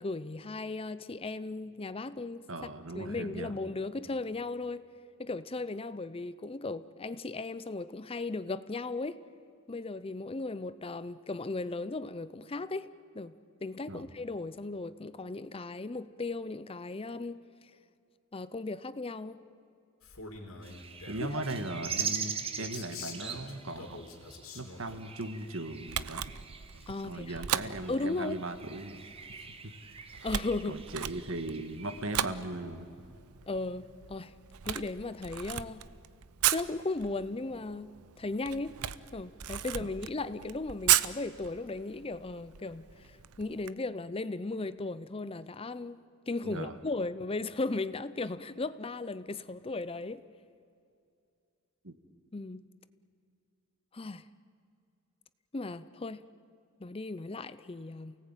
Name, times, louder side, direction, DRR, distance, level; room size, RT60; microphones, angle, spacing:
voice 1, 0.0-2.4 2.9-4.8 5.2-9.2 9.7-12.9 13.1-13.3 13.6-17.4 18.3-19.4 21.3-21.4 26.9-27.4 27.9-28.4 30.2-30.8 33.5-34.3 34.6-35.8 36.5-37.9 38.2-38.8 39.1-50.2 52.3-52.6 53.9-54.2 55.5-56.2 56.8-58.2, left 3 dB, 25° left, 15 dB, 0.5 m, -36 dB
voice 2, 2.5-3.5 13.9-14.1 21.1-24.0 24.5-26.2 27.0-29.0 30.7-32.9 39.8-39.9 46.4-46.8 51.8-51.9, right 2 dB, 60° right, 8 dB, 1.8 m, -38 dB
Male speech man speaking, 20.0-21.4 22.6-25.0, left 3 dB, 70° left, 3.5 m, -46 dB
sound 1, 20.6-32.0, right 6 dB, 25° right, 1.3 m, -42 dB
Camera, 25.9-43.7, right 12 dB, 85° right, 0.7 m, -36 dB
28.5 x 18.5 x 9.0 m, 2.5 s
head